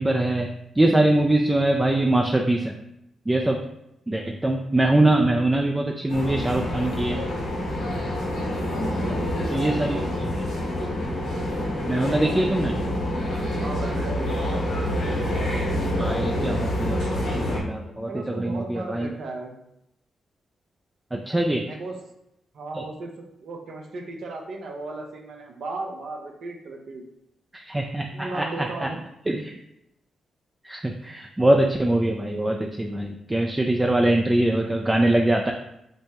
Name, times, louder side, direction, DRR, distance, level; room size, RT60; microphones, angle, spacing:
voice 1, 0.0-2.7 3.3-3.7 4.1-7.3 9.5-10.4 11.9-12.8 16.0-19.1 21.1-21.7 22.7-22.8 27.5-28.9 29.3-29.5 30.6-35.5, right 1 dB, 20° right, 2 dB, 0.4 m, -23 dB
sound 1, 6.1-17.6, left 1 dB, 85° left, 1.3 m, -27 dB
voice 2, 8.7-10.1 13.6-14.8 18.0-19.5 21.6-22.0 22.5-23.1 23.4-27.0 28.1-29.0, right 2 dB, 65° right, 2 dB, 0.7 m, -36 dB
5.3 x 2.1 x 2.9 m, 0.83 s
hypercardioid pair, 45°, 0 cm